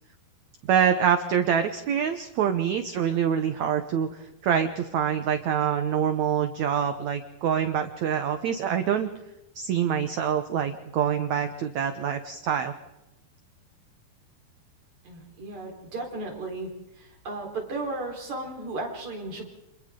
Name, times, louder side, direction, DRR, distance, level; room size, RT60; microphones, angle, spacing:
voice 1, 0.7-9.1 9.5-12.7, right 8 dB, 85° right, 8 dB, 1.6 m, -25 dB
voice 2, 15.1-16.7 17.0-19.4, right 2 dB, 45° right, 0 dB, 5.4 m, -35 dB
29.5 x 27.5 x 3.8 m, 0.96 s
omnidirectional pair, 4.7 m